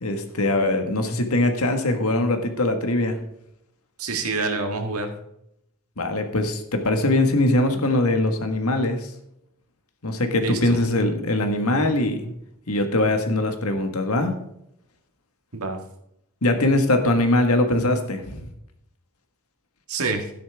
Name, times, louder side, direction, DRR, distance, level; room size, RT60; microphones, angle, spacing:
voice 1, 0.0-3.2 6.0-9.1 10.0-12.4 12.7-14.3 16.4-18.5, left 1 dB, 85° left, 6 dB, 1.7 m, -22 dB
voice 2, 4.0-5.2 10.4-10.6 15.5-15.8 19.9-20.3, right 3 dB, 85° right, 5 dB, 1.7 m, -27 dB
12.5 x 10.5 x 3.5 m, 0.77 s
head